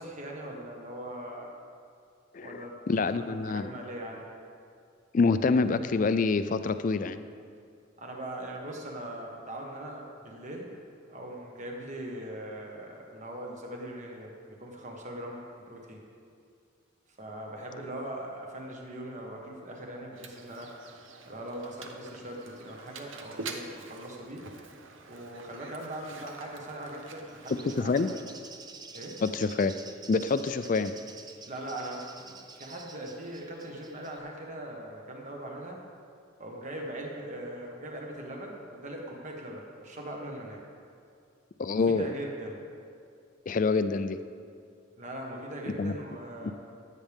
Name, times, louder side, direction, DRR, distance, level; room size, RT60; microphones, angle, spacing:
voice 1, 0.0-1.5 2.4-2.8 3.2-4.3 8.0-10.7 11.1-16.0 17.2-20.7 21.3-24.5 25.1-28.0 28.9-29.2 31.4-35.8 36.4-40.6 41.7-42.6 45.0-46.5, right 1 dB, 40° right, 0 dB, 1.4 m, -40 dB
voice 2, 2.3-3.7 5.1-7.2 27.8-28.1 29.2-29.7 30.1-30.9 41.6-42.1 43.5-44.2 45.8-45.9, left 4 dB, 40° left, 12 dB, 0.4 m, -26 dB
Mechanisms, 20.1-28.2, right 3 dB, 85° right, 0.8 m, -46 dB
Bird, 27.3-34.2, right 4 dB, 20° right, 0.6 m, -49 dB
15.5 x 8.4 x 3.6 m, 2.3 s
head